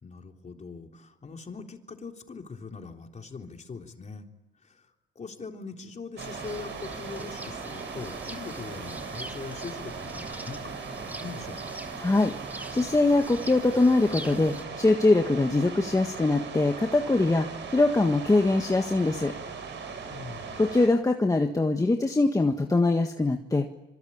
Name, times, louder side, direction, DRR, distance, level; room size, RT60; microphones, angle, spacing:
voice 1, 0.0-4.3 4.6-4.9 5.2-11.8 20.1-20.6, left 4 dB, 35° left, 3 dB, 3.7 m, -41 dB
sound 1, 6.2-14.7, right 1 dB, 10° right, 2.1 m, -43 dB
sound 2, 6.2-20.9, right 5 dB, 70° right, 4.8 m, -39 dB
voice 2, 12.0-12.3 12.7-19.3 20.6-23.7, left 2 dB, 15° left, 3 dB, 1.7 m, -23 dB
26.0 x 24.5 x 8.8 m, 1.1 s
cardioid pair, 90°, 20 cm